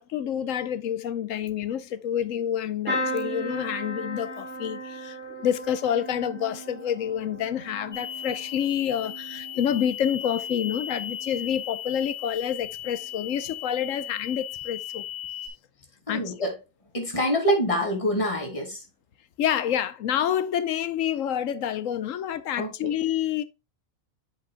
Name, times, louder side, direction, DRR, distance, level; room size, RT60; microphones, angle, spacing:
voice 1, 0.0-15.0 16.1-16.3 19.4-23.4, left 9 dB, 75° left, 1.1 m, -28 dB
sound 1, 2.9-10.7 11.1-11.7 12.9-13.1 13.4-13.5, equal, 5° right, 2.8 m, -36 dB
sound 2, 7.9-15.5, left 10 dB, 45° left, 1.9 m, -37 dB
voice 2, 16.1-16.5 16.9-18.8 22.6-22.7, equal, 25° left, 2.3 m, -25 dB
8.2 x 6.5 x 2.2 m
omnidirectional pair, 1.4 m